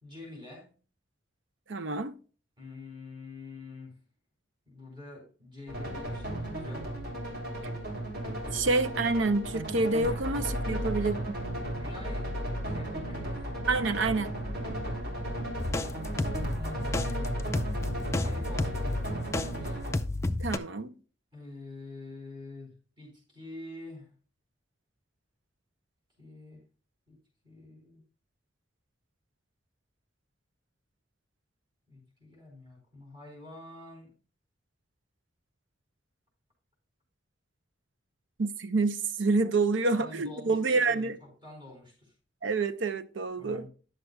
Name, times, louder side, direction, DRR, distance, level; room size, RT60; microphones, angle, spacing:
voice 1, 0.0-0.7 2.6-4.0 4.7-7.0 7.5-7.8 8.5-8.7 10.0-10.2 10.6-10.8 11.7-13.4 16.5-19.0 19.6-19.8 21.3-24.1 26.2-26.6 27.1-27.2 27.4-28.0 31.9-34.1 39.9-42.1 43.4-43.7, left 2 dB, 25° right, 4.6 m, -46 dB
voice 2, 1.7-2.1 8.5-11.3 13.7-14.3 20.4-20.9 38.4-41.2 42.4-43.7, right 3 dB, 80° right, 0.7 m, -28 dB
sound 1, 5.7-20.0, equal, 55° right, 3.2 m, -34 dB
sound 2, 15.6-19.5 19.9-20.6, left 2 dB, 15° left, 0.5 m, -31 dB
11.0 x 7.9 x 2.2 m
head